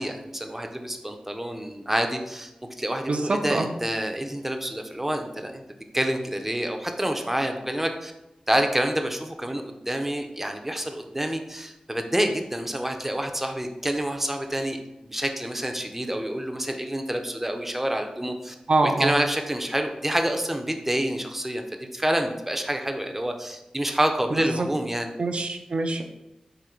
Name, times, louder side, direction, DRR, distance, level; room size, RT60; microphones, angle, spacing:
voice 1, 0.0-2.5 2.8-5.6 5.9-8.1 8.5-18.5 18.8-25.1, right 1 dB, 10° right, 5 dB, 0.5 m, -28 dB
voice 2, 3.1-3.7 18.7-19.2 24.3-24.7 25.2-26.0, right 2 dB, 60° right, 5 dB, 0.5 m, -24 dB
3.8 x 2.6 x 4.4 m, 0.93 s
cardioid pair, 50°, 2 cm